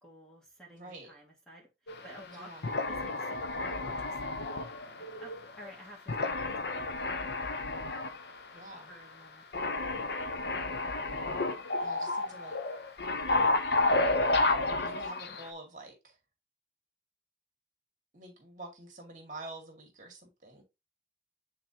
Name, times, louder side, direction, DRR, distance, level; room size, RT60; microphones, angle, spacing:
voice 1, 0.0-2.5 2.9-4.2 5.0-8.2 8.9-9.4, equal, 5° left, 1.8 m, -53 dB
voice 2, 0.7-1.1 2.3-2.7 8.5-8.9 11.8-12.6 14.8-16.2 18.1-20.6, right 2 dB, 45° right, 2.0 m, -47 dB
sound 1, 1.9-2.2 2.6-5.7 6.1-8.3 8.6-8.7 9.5-15.5, left 2 dB, 65° left, 0.7 m, -31 dB
8.7 x 3.8 x 2.8 m
head